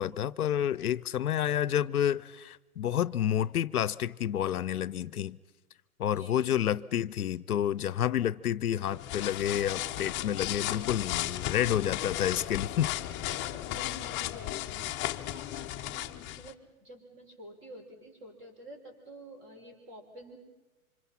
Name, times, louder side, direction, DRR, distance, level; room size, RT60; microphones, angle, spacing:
voice 1, 0.0-5.4 6.0-12.9, left 10 dB, 85° left, 0.7 m, -29 dB
voice 2, 6.2-6.8 13.4-20.4, right 1 dB, 30° right, 5.7 m, -50 dB
sound 1, 8.8-16.5, left 14 dB, 25° left, 0.8 m, -35 dB
28.0 x 25.5 x 5.8 m
hypercardioid pair, 125°, 43 cm